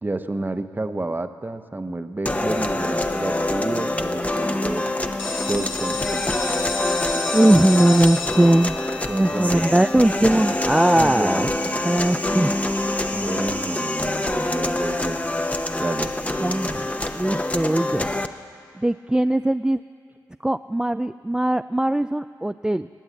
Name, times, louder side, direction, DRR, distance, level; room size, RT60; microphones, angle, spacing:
voice 1, 0.0-4.8 5.3-6.4 9.1-9.8 10.9-11.6 13.1-15.3 15.8-16.1, right 2 dB, 25° right, 9 dB, 0.9 m, -30 dB
sound 1, 2.3-18.3, left 1 dB, 20° left, 0.9 m, -25 dB
sound 2, 5.2-10.8, left 5 dB, 85° left, 1.2 m, -32 dB
voice 2, 7.3-8.8 9.1-11.5 11.8-12.6 16.4-16.9 17.1-18.1 18.7-19.8 20.4-22.9, right 1 dB, 10° right, 11 dB, 0.3 m, -20 dB
19.5 x 8.8 x 8.3 m, 2.3 s
supercardioid pair, 45°, 8 cm